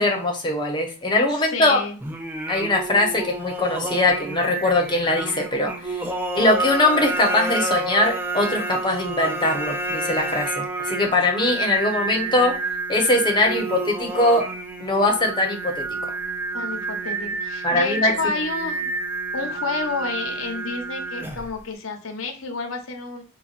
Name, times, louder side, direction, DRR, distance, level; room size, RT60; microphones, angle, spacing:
voice 1, 0.0-1.8 2.5-6.1 6.3-12.6 12.9-14.5 14.8-15.9 17.6-18.1, left 2 dB, 25° left, 2 dB, 0.9 m, -21 dB
voice 2, 1.3-2.0 16.5-23.2, left 4 dB, 85° left, 4 dB, 0.9 m, -30 dB
Singing, 2.0-21.6, right 2 dB, 10° right, 0.5 m, -29 dB
5.5 x 2.3 x 2.4 m, 0.36 s
head